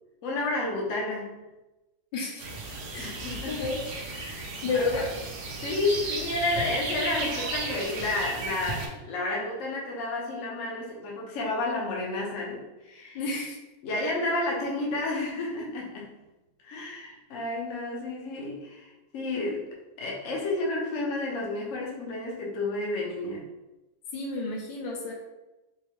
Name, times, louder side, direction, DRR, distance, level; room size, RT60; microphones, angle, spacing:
voice 1, 0.2-1.4 3.0-3.7 4.2-4.5 4.7-5.0 5.6-13.2 13.8-16.1 16.6-19.7 20.0-23.5, left 2 dB, 60° left, -2 dB, 0.8 m, -31 dB
voice 2, 2.1-2.5 2.9-3.9 4.6-5.1 13.1-13.6 24.1-25.1, left 3 dB, 75° left, 0 dB, 1.4 m, -31 dB
sound 1, 2.4-8.9, right 3 dB, 70° right, 1.1 m, -35 dB
4.6 x 2.1 x 2.9 m, 1.0 s
omnidirectional pair, 2.1 m